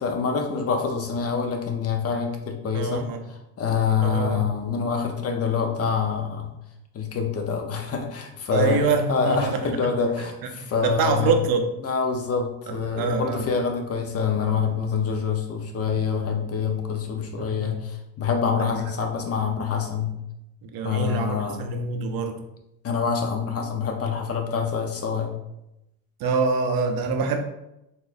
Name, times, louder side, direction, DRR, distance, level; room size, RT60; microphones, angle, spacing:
voice 1, 0.0-6.5 6.9-11.4 11.8-20.2 20.8-21.6 22.8-25.3, left 6 dB, 35° left, 3 dB, 0.7 m, -26 dB
voice 2, 2.7-3.2 4.0-4.4 8.5-9.9 10.5-11.7 12.7-13.5 17.4-17.7 18.6-18.8 20.6-22.4 26.2-27.4, right 4 dB, 60° right, 5 dB, 0.6 m, -25 dB
4.0 x 2.5 x 2.5 m, 0.89 s
supercardioid pair, 90°, 41 cm